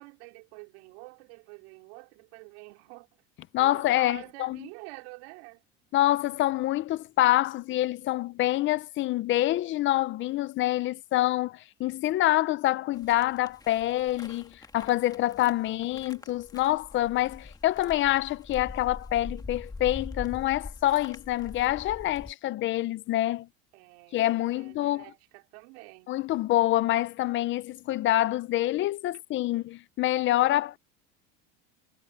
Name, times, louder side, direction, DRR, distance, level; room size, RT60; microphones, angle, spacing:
voice 1, 0.0-3.1 3.6-5.6 15.9-16.4 23.7-24.3 24.5-26.1, right 27 dB, 80° right, 3.7 m, -48 dB
voice 2, 3.5-4.6 5.9-23.5 24.1-25.1 26.1-30.8, left 15 dB, 40° left, 0.6 m, -26 dB
sound 1, 12.9-22.3, left 3 dB, 10° left, 1.7 m, -43 dB
cardioid pair, 140°, 31 cm